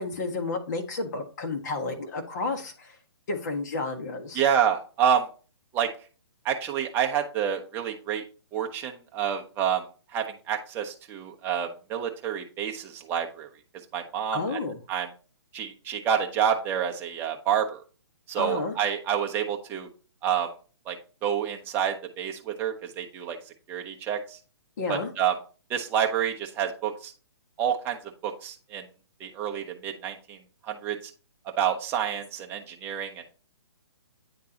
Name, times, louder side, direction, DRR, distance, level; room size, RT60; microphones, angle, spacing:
voice 1, 0.0-2.9 3.3-4.4 14.3-14.8 18.4-18.7 24.8-25.1, left 3 dB, 40° left, 3 dB, 1.4 m, -31 dB
voice 2, 4.3-5.3 5.7-5.9 6.4-8.2 8.5-9.8 10.1-13.5 13.9-14.6 14.9-15.1 15.5-17.8 18.3-19.9 20.2-20.5 20.9-21.0 21.2-23.4 23.7-24.4 24.9-25.4 25.7-27.1 27.6-28.0 28.2-28.8 29.2-30.4 30.6-31.1 31.6-33.2, right 8 dB, 15° right, 3 dB, 0.8 m, -28 dB
9.5 x 3.7 x 2.8 m, 0.37 s
hypercardioid pair, 155°, 14 cm